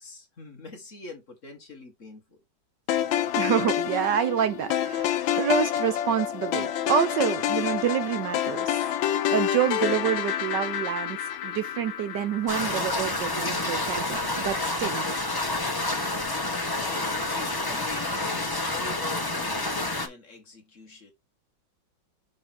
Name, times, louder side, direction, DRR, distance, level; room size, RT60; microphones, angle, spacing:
voice 1, 0.0-2.4 16.7-21.1, left 3 dB, 40° left, 1.7 m, -43 dB
sound 1, 2.9-13.1, left 11 dB, 80° left, 1.5 m, -28 dB
voice 2, 3.4-8.8 9.3-15.1, right 9 dB, 70° right, 1.3 m, -27 dB
sound 2, 12.5-20.1, left 2 dB, 20° left, 0.7 m, -29 dB
6.4 x 3.8 x 4.3 m
omnidirectional pair, 2.2 m